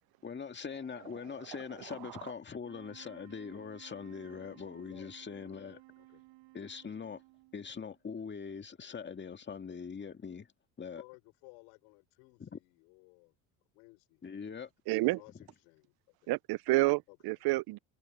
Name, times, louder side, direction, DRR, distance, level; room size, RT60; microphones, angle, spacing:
voice 1, 0.2-5.8 6.5-7.2 7.5-10.5 10.8-11.0 12.4-12.6 14.2-14.7 15.0-15.1, left 6 dB, 25° left, 2.0 m, -42 dB
sound 1, 2.5-8.0, right 23 dB, 75° right, 6.2 m, -57 dB
voice 2, 11.0-13.4 13.7-14.2 15.1-16.3 17.1-17.2, left 32 dB, 80° left, 4.2 m, -58 dB
voice 3, 14.9-15.2 16.3-17.8, right 21 dB, 55° right, 0.6 m, -29 dB
supercardioid pair, 90°, 44 cm